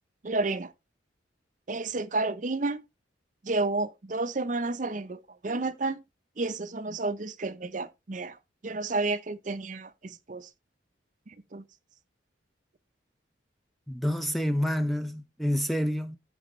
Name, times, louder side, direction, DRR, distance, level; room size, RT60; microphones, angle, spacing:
voice 1, 0.2-0.7 1.7-2.8 3.4-6.0 6.4-8.4 8.6-10.5 11.3-11.6, right 3 dB, 40° right, 0.6 m, -31 dB
voice 2, 13.9-16.2, equal, ahead, 0.5 m, -28 dB
14.0 x 4.9 x 3.1 m
head